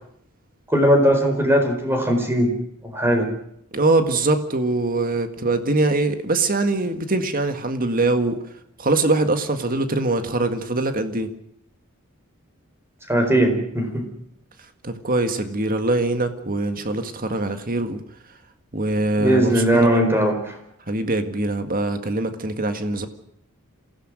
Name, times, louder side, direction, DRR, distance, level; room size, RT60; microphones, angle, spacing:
voice 1, 0.7-2.5 2.9-3.3 13.1-14.0 19.2-20.6, equal, 10° right, 4.5 m, -19 dB
voice 2, 3.7-8.4 8.8-11.3 14.8-18.0 18.7-20.0 20.9-23.1, right 2 dB, 40° right, 1.8 m, -23 dB
27.0 x 16.5 x 6.3 m
head